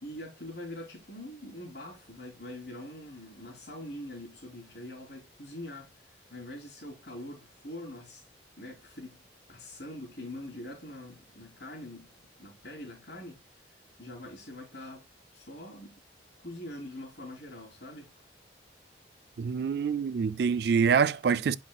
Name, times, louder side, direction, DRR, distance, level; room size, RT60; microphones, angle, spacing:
voice 1, 0.0-8.3 8.6-9.2 9.5-12.1 12.4-13.6 14.0-15.1 15.3-16.0 16.4-18.1, left 1 dB, 60° left, 3.1 m, -44 dB
voice 2, 19.4-21.6, right 6 dB, 60° right, 0.3 m, -25 dB
8.3 x 5.4 x 2.2 m
head